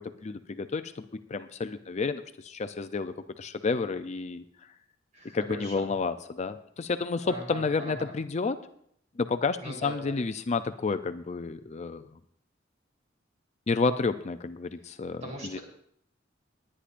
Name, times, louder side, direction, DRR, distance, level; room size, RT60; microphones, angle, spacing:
voice 1, 0.0-4.4 5.3-8.6 9.2-12.0 13.7-15.6, left 4 dB, 35° left, 10 dB, 0.4 m, -30 dB
voice 2, 5.1-5.9 7.2-8.1 9.6-10.1 15.2-15.6, right 1 dB, 40° right, -1 dB, 3.7 m, -40 dB
20.0 x 9.9 x 2.5 m, 0.67 s
head